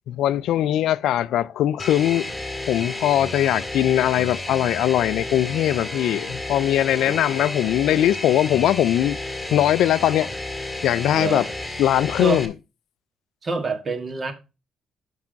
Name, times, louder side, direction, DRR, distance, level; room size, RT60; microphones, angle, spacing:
voice 1, 0.1-2.3 2.7-9.2 9.5-10.3 10.8-11.4 11.8-12.5, left 12 dB, 80° left, 0.3 m, -20 dB
sound 1, 1.8-12.5, left 2 dB, 5° left, 2.1 m, -32 dB
voice 2, 11.1-11.4 12.2-12.4 13.4-14.3, right 4 dB, 40° right, 1.6 m, -26 dB
6.0 x 5.5 x 5.1 m
cardioid pair, 90°, 0 cm